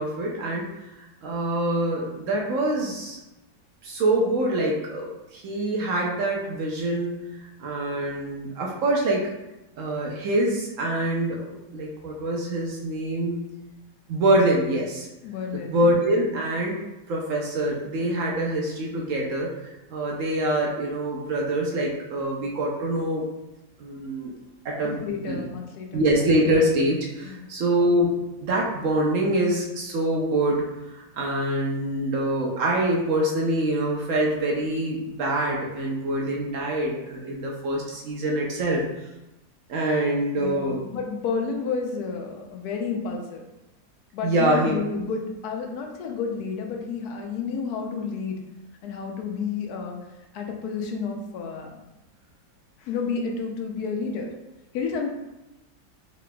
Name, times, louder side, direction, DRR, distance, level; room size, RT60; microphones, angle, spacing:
voice 1, 0.0-3.2 3.8-7.3 7.6-9.3 9.8-13.5 14.1-15.1 15.5-23.2 23.8-24.3 24.6-25.4 25.9-38.8 39.7-40.8 44.2-44.7, right 1 dB, 65° right, -2 dB, 0.9 m, -25 dB
voice 2, 15.2-15.7 25.0-26.0 27.2-27.4 40.3-43.4 44.1-48.4 48.8-50.0 50.3-51.8 52.8-54.3 54.7-55.1, left 5 dB, 85° left, 2 dB, 1.1 m, -30 dB
3.8 x 3.6 x 2.2 m, 0.97 s
omnidirectional pair, 1.6 m